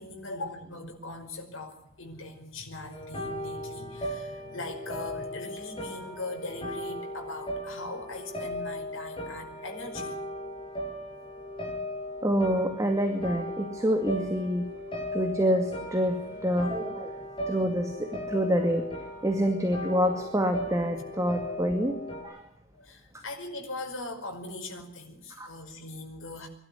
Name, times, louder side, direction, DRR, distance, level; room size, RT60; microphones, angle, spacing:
voice 1, 0.0-10.2 22.7-26.5, left 2 dB, 75° left, 3 dB, 5.2 m, -40 dB
sound 1, 2.9-22.2, equal, 25° left, 6.1 m, -37 dB
voice 2, 12.2-14.6 15.1-16.2 16.4-17.1 17.5-18.8 19.2-22.0 22.2-22.4 25.4-25.5, equal, 15° right, 4 dB, 2.2 m, -27 dB
23.0 x 12.5 x 9.6 m, 0.76 s
head